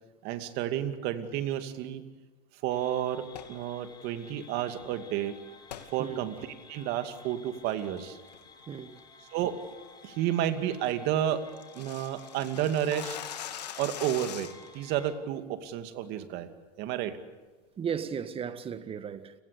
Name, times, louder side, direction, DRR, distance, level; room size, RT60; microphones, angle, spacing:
voice 1, 0.2-2.0 2.6-3.2 3.5-5.4 5.9-6.4 6.7-8.2 9.3-9.5 10.0-11.4 11.7-13.2 13.8-14.5 14.7-16.5 16.8-17.2, right 11 dB, 55° right, 2.5 m, -31 dB
sound 1, 2.7-15.1, left 4 dB, 20° left, 3.6 m, -53 dB
sound 2, 3.3-3.6 5.7-5.9 6.4-6.5 7.0-7.3 7.6-8.0 8.3-8.6 8.9-9.0 9.4-9.7 10.0-10.1 10.5-10.6 10.7-10.8 11.1-14.8, left 10 dB, 90° left, 2.5 m, -42 dB
voice 2, 8.7-9.0 17.8-19.3, right 7 dB, 25° right, 1.7 m, -35 dB
30.0 x 18.5 x 8.4 m
hypercardioid pair, 110°, 20 cm